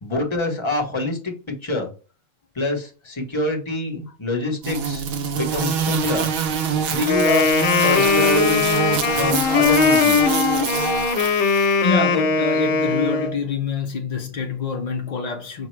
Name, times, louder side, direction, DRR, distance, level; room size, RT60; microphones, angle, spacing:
voice 1, 0.0-1.3 1.6-1.9 2.5-5.0 5.3-6.3 6.9-7.5 7.8-8.8 9.1-10.4, left 2 dB, 25° left, 0.9 m, -25 dB
sound 1, 4.6-11.8, right 7 dB, 80° right, 1.1 m, -25 dB
Wind instrument woodwind instrument, 7.1-13.3, left 5 dB, 60° left, 0.9 m, -20 dB
voice 2, 11.8-15.7, left 4 dB, 75° left, 0.3 m, -26 dB
5.2 x 2.1 x 3.1 m
omnidirectional pair, 1.5 m